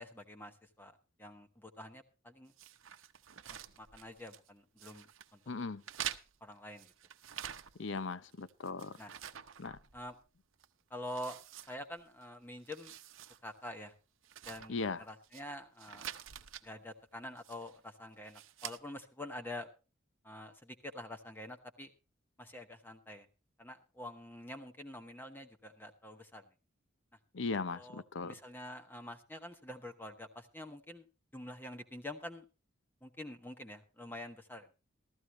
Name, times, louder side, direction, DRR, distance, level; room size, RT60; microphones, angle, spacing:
voice 1, 0.0-2.5 3.5-5.1 5.3-5.4 6.4-6.9 9.0-9.1 9.9-10.2 10.9-11.4 11.7-13.0 13.4-13.9 14.4-16.1 16.6-19.7 20.2-21.9 22.4-23.3 23.6-26.4 27.7-31.1 31.3-32.5 33.0-34.7, left 1 dB, 10° left, 1.0 m, -47 dB
sound 1, 2.6-4.5 4.8-5.3 5.8-8.0 8.3-10.2 10.6-10.7 11.1-12.2 12.6-13.4 13.7-13.8 14.2-15.4 15.8-16.7 17.4-17.8 18.2-18.8, right 10 dB, 80° right, 0.8 m, -47 dB
voice 2, 5.5-5.8 7.8-9.0 9.6-9.8 14.7-15.0 27.3-28.4, left 4 dB, 65° left, 0.7 m, -38 dB
14.5 x 14.0 x 3.1 m
head